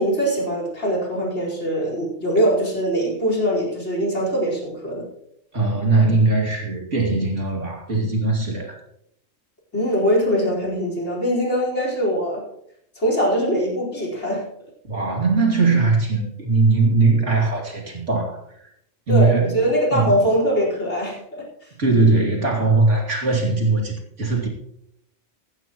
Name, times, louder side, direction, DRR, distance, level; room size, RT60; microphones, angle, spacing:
voice 1, 0.0-5.1 9.7-12.5 12.9-14.5 19.1-21.7, equal, 55° left, -1 dB, 5.1 m, -22 dB
voice 2, 5.5-8.8 14.9-18.7 19.1-19.5 19.9-20.3 21.8-24.5, right 3 dB, 60° right, 0 dB, 3.0 m, -20 dB
15.5 x 15.0 x 3.1 m, 0.72 s
omnidirectional pair, 1.4 m